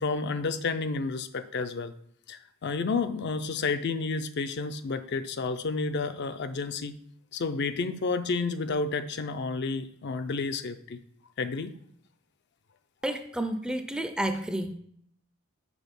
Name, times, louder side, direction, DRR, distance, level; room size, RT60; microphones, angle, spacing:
voice 1, 0.0-1.9 2.3-6.9 7.3-11.0 11.4-11.7, left 4 dB, 55° left, 10 dB, 0.5 m, -30 dB
voice 2, 13.0-14.7, right 1 dB, 5° right, 7 dB, 0.5 m, -30 dB
6.2 x 4.7 x 5.3 m, 0.67 s
head